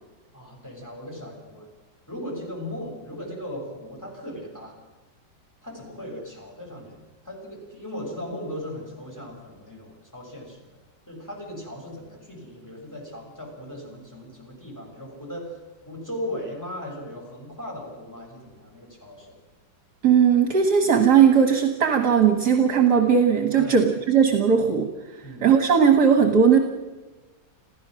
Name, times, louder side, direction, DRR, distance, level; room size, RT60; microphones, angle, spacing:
voice 1, 0.3-1.7 2.1-4.7 5.6-7.0 7.2-10.8 11.1-15.6 15.8-19.4 23.5-23.8 25.2-25.5, left 1 dB, 10° left, -1 dB, 6.4 m, -37 dB
voice 2, 20.0-24.9 25.4-26.6, right 7 dB, 60° right, 5 dB, 1.9 m, -18 dB
27.5 x 15.5 x 6.3 m, 1.2 s
omnidirectional pair, 2.0 m